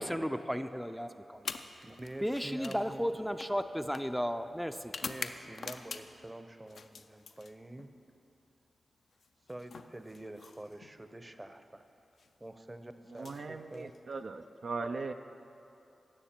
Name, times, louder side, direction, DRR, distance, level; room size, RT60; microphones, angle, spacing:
voice 1, 0.0-1.4 2.2-4.9, equal, ahead, 8 dB, 0.4 m, -34 dB
sound 1, 1.4-6.3 6.7-7.9 9.1-11.0 12.0-12.3 13.1-14.2, left 4 dB, 75° left, 0.4 m, -46 dB
voice 2, 1.8-3.0 5.0-7.9 9.5-11.8 12.4-13.9, right 1 dB, 25° right, 9 dB, 0.7 m, -46 dB
voice 3, 13.1-15.1, right 3 dB, 70° right, 7 dB, 0.4 m, -39 dB
16.5 x 6.4 x 4.4 m, 2.8 s
cardioid pair, 40°, 0 cm